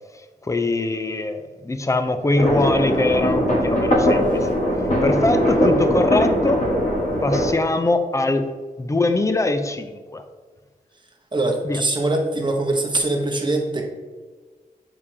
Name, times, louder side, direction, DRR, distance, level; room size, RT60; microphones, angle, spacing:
voice 1, 0.4-4.5 5.0-6.6 7.2-8.5 8.8-10.2 11.6-11.8, left 2 dB, 20° left, 8 dB, 0.5 m, -22 dB
sound 1, 2.4-7.5, equal, 50° left, 1.5 m, -20 dB
voice 2, 11.3-13.8, right 2 dB, 30° right, 0 dB, 1.1 m, -22 dB
7.2 x 4.9 x 2.8 m, 1.5 s
wide cardioid pair, 80°, 16 cm